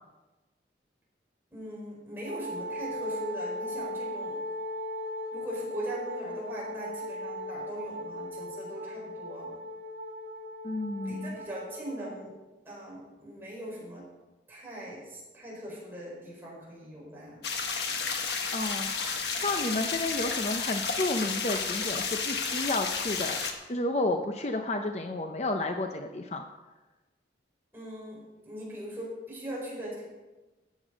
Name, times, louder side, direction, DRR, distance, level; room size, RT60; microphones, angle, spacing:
voice 1, 1.5-4.4 5.3-9.5 11.0-12.3 12.6-14.1 14.5-17.4 27.7-30.0, equal, 10° right, -5 dB, 4.7 m, -40 dB
Wind instrument woodwind instrument, 2.2-12.2, left 1 dB, 60° right, 2.1 m, -38 dB
voice 2, 10.6-11.4 18.5-26.4, left 2 dB, 35° left, 5 dB, 0.6 m, -31 dB
sound 1, 17.4-23.5, left 5 dB, 70° left, 1.3 m, -32 dB
13.5 x 8.3 x 5.1 m, 1.2 s
head